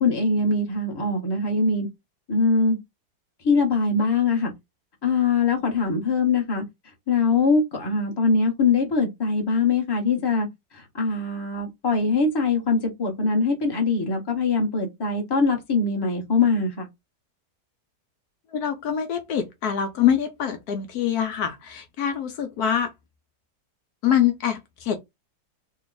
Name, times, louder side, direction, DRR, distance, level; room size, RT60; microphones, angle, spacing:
voice 1, 0.0-1.9 2.3-2.8 3.4-4.5 5.0-6.6 7.1-10.5 10.7-16.9, left 4 dB, 20° left, 0.9 m, -22 dB
voice 2, 18.5-22.9 24.0-25.0, left 9 dB, 70° left, 1.1 m, -24 dB
3.2 x 2.3 x 3.8 m
omnidirectional pair, 1.8 m